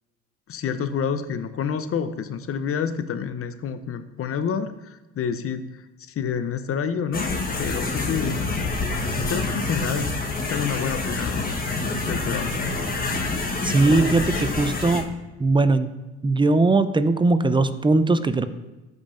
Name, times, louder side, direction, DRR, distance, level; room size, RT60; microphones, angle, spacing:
voice 1, 0.5-7.3 7.6-8.4 9.3-10.1 10.5-11.6 12.1-12.6, left 7 dB, 40° left, 11 dB, 0.8 m, -28 dB
sound 1, 7.1-15.0, left 3 dB, 25° left, 1.2 m, -27 dB
voice 2, 13.6-15.1 15.4-15.9 16.2-18.4, right 3 dB, 15° right, 11 dB, 0.6 m, -20 dB
13.5 x 5.3 x 2.6 m, 1.1 s
supercardioid pair, 70°, 33 cm